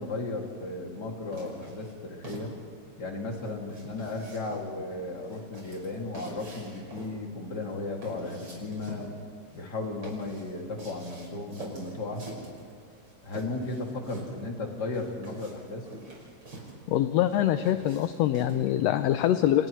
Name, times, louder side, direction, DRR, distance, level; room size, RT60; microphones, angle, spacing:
voice 1, 0.0-2.5 3.0-9.1 9.5-12.2 13.2-15.9, left 2 dB, 35° left, 0 dB, 2.8 m, -35 dB
sound 1, 1.3-18.8, right 2 dB, 40° right, 6.1 m, -46 dB
voice 2, 16.9-19.7, left 12 dB, 75° left, 10 dB, 1.7 m, -24 dB
30.0 x 29.5 x 3.2 m, 2.5 s
omnidirectional pair, 3.3 m